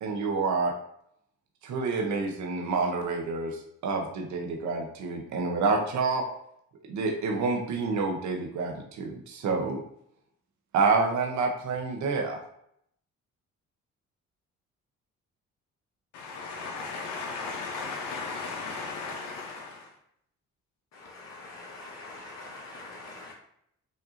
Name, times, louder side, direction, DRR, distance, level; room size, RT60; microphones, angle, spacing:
voice 1, 0.0-0.7 1.6-3.5 3.8-6.2 6.9-9.8 10.7-12.4, right 4 dB, 70° right, 2 dB, 0.8 m, -28 dB
voice 2, 16.1-19.9, left 4 dB, 90° left, 0 dB, 0.7 m, -36 dB
voice 3, 21.1-23.3, left 2 dB, 60° left, -5 dB, 1.1 m, -44 dB
5.2 x 2.6 x 2.5 m, 0.72 s
cardioid pair, 90°, 30 cm